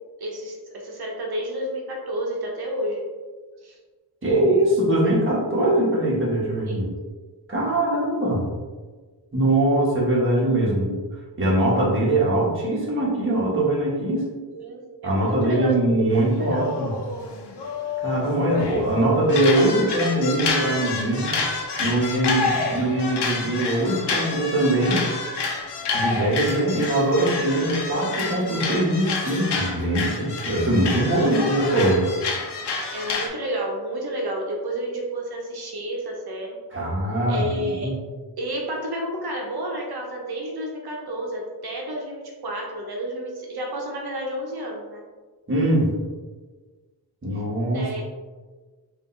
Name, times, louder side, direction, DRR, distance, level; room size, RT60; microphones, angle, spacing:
voice 1, 0.2-3.0 3.6-3.8 6.7-6.9 14.5-16.7 31.1-31.4 32.9-36.6 37.3-37.9 38.4-45.0 47.7-48.0, right 1 dB, 65° right, 0 dB, 0.9 m, -31 dB
voice 2, 4.2-6.8 7.5-8.5 9.3-10.9 11.4-14.2 15.0-16.9 18.0-21.4 21.8-25.0 25.9-32.1 36.7-38.0 45.5-45.9 47.2-47.9, right 1 dB, 30° right, -6 dB, 1.4 m, -22 dB
sound 1, 16.2-18.9 19.3-33.3, left 4 dB, 80° left, 0.8 m, -28 dB
5.2 x 2.7 x 3.2 m, 1.4 s
wide cardioid pair, 105°, 40 cm